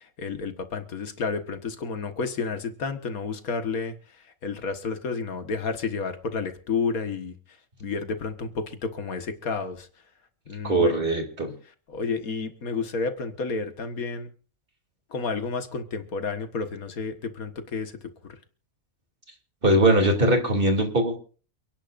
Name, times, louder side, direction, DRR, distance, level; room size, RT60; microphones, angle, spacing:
voice 1, 0.0-3.9 4.4-7.4 7.8-9.9 10.5-11.1 11.9-14.3 15.1-17.9, left 4 dB, 80° left, 8 dB, 1.9 m, -31 dB
voice 2, 10.6-11.5 19.6-21.2, right 1 dB, 40° right, 3 dB, 3.0 m, -21 dB
29.0 x 10.5 x 2.6 m, 0.38 s
omnidirectional pair, 1.5 m